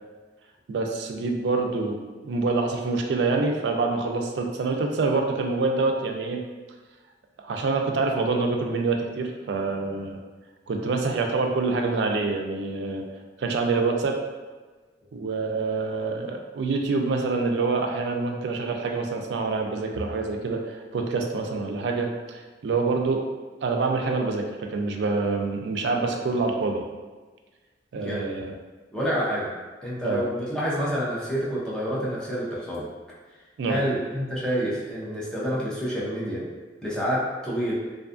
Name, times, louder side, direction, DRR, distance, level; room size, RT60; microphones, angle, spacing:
voice 1, 0.7-2.0 2.2-6.4 7.4-10.2 10.7-13.1 13.4-14.2 15.1-23.2 23.6-26.8 27.9-28.5 30.0-30.2 33.6-33.8, right 3 dB, 70° right, 3 dB, 0.3 m, -26 dB
voice 2, 28.0-28.3 28.9-29.5 29.8-32.9 33.7-36.4 36.8-37.7, equal, 5° left, -7 dB, 0.5 m, -28 dB
2.5 x 2.3 x 2.4 m, 1.3 s
head